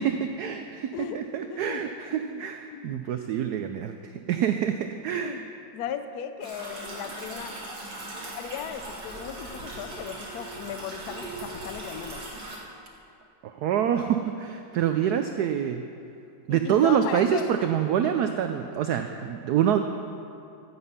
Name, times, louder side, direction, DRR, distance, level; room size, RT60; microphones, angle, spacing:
voice 1, 0.0-5.4 13.4-15.8 16.5-19.8, right 9 dB, 85° right, 7 dB, 0.8 m, -26 dB
voice 2, 1.5-1.8 2.1-2.5 2.7-3.0 5.2-5.5 5.7-7.5 8.3-12.2 16.5-17.5, left 9 dB, 70° left, 9 dB, 0.9 m, -37 dB
sound 1, 6.4-12.6, right 2 dB, 55° right, 2.5 m, -39 dB
13.5 x 7.9 x 5.5 m, 2.6 s
omnidirectional pair, 2.2 m